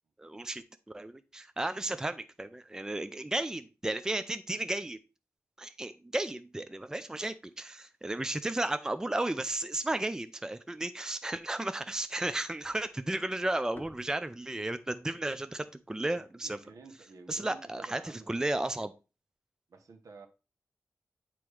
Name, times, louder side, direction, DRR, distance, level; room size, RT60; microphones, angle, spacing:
voice 1, 0.2-0.6 0.9-5.0 5.6-16.6 17.3-18.9, right 2 dB, 10° right, 0.4 m, -34 dB
sound 1, 12.6-16.9, left 2 dB, 35° left, 1.0 m, -58 dB
voice 2, 16.1-18.4 19.7-20.3, right 4 dB, 75° right, 1.2 m, -52 dB
8.8 x 3.0 x 4.8 m
wide cardioid pair, 115°, 6 cm